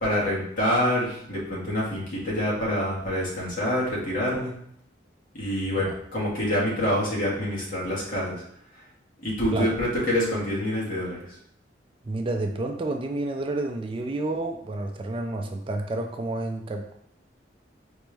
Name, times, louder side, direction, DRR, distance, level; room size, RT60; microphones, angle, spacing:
voice 1, 0.0-4.5 5.3-8.4 9.2-11.2, left 1 dB, 50° left, -6 dB, 1.6 m, -26 dB
voice 2, 12.1-16.9, right 2 dB, 30° right, 3 dB, 0.4 m, -30 dB
4.3 x 3.1 x 3.3 m, 0.69 s
head